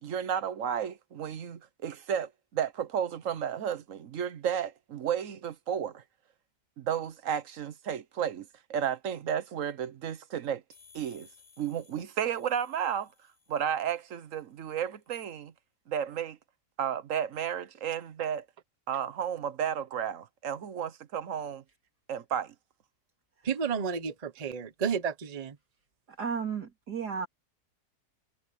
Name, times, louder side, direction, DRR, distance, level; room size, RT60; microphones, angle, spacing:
voice 1, 0.0-6.0 6.8-10.6 10.9-11.3 11.6-13.1 13.5-15.5 15.9-16.4 16.8-18.4 18.9-21.6 22.1-22.5, right 8 dB, 55° right, 1.2 m, -33 dB
sound 1, 10.7-14.3, left 5 dB, 40° left, 7.9 m, -60 dB
voice 2, 23.4-25.6, right 6 dB, 30° right, 0.9 m, -31 dB
voice 3, 26.1-27.3, right 6 dB, 80° right, 3.9 m, -33 dB
omnidirectional pair, 1.7 m